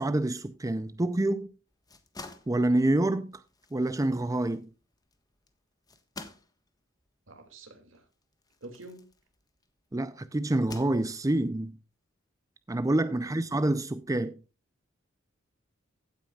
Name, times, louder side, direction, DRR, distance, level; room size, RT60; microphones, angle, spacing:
voice 1, 0.0-1.5 2.5-3.4 3.7-4.7 9.9-11.7 12.7-14.4, right 1 dB, 15° right, 0.5 m, -27 dB
sound 1, 1.7-9.8 10.4-11.5, left 3 dB, 20° left, 1.4 m, -50 dB
voice 2, 7.3-8.1 8.6-9.1 13.2-13.5, right 2 dB, 70° right, 2.5 m, -48 dB
16.0 x 8.7 x 2.4 m
head